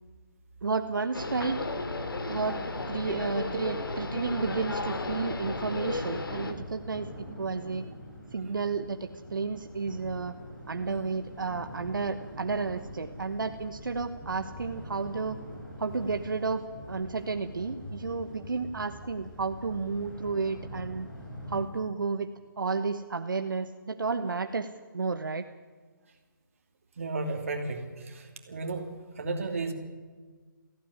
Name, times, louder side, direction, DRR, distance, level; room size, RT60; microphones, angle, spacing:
voice 1, 0.6-1.6 2.3-2.6 2.9-7.1 7.4-7.8 8.3-10.3 10.7-15.4 15.8-21.1 21.5-22.3 22.6-25.4, right 4 dB, 70° right, 8 dB, 1.2 m, -32 dB
sound 1, 1.1-6.5, left 2 dB, 85° left, 2.9 m, -34 dB
sound 2, 2.0-21.6, equal, 10° left, 3.7 m, -45 dB
voice 2, 27.0-28.9 29.2-29.7, right 3 dB, 40° right, 4 dB, 2.9 m, -33 dB
17.5 x 15.5 x 9.8 m, 1.5 s
hypercardioid pair, 175°, 11 cm